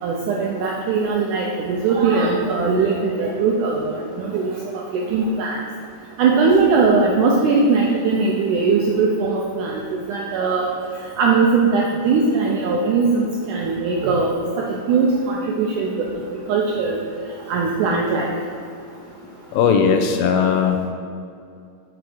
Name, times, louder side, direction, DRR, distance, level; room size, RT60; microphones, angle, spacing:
voice 1, 0.0-4.6 4.9-5.6 6.2-9.8 10.1-10.7 11.2-14.3 14.9-15.9 16.5-17.0 17.5-18.3, right 4 dB, 85° right, -1 dB, 1.8 m, -20 dB
voice 2, 19.5-20.9, left 6 dB, 80° left, 4 dB, 2.3 m, -18 dB
6.0 x 5.9 x 4.9 m, 2.4 s
omnidirectional pair, 4.3 m